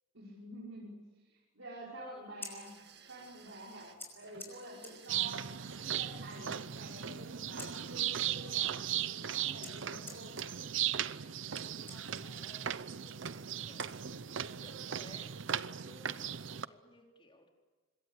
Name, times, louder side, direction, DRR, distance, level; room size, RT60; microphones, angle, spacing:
voice 1, 0.1-2.7 3.1-10.4, right 1 dB, 90° right, -5 dB, 5.8 m, -49 dB
voice 2, 1.9-2.4 3.7-3.8 11.2-17.5, left 1 dB, 25° left, 1 dB, 4.3 m, -58 dB
Scissors, 2.2-14.5, left 2 dB, 10° left, 5.4 m, -55 dB
sound 1, 2.6-8.6 9.9-10.2 10.5-10.6, right 6 dB, 55° right, 2.1 m, -60 dB
sound 2, 5.1-16.6, right 10 dB, 75° right, 0.7 m, -37 dB
25.5 x 22.0 x 8.5 m, 1.3 s
head